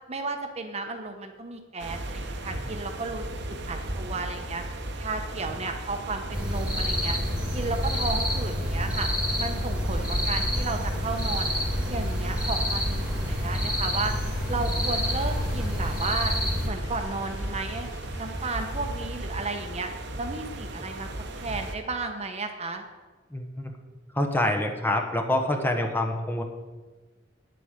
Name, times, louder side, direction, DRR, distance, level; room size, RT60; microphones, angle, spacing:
voice 1, 0.1-4.6 5.0-7.2 7.5-9.1 9.4-11.5 11.9-14.1 14.5-16.3 16.6-17.9 18.2-19.9 20.2-21.1 21.4-22.8, right 3 dB, 35° right, 5 dB, 1.0 m, -33 dB
sound 1, 1.8-21.8, right 1 dB, 65° right, 1.1 m, -36 dB
sound 2, 6.3-16.7, equal, 5° right, 1.9 m, -28 dB
sound 3, 9.9-19.3, equal, 90° left, 2.6 m, -44 dB
voice 2, 23.3-23.7 24.1-26.4, left 1 dB, 10° left, 3 dB, 1.1 m, -26 dB
9.9 x 8.2 x 6.6 m, 1.3 s
head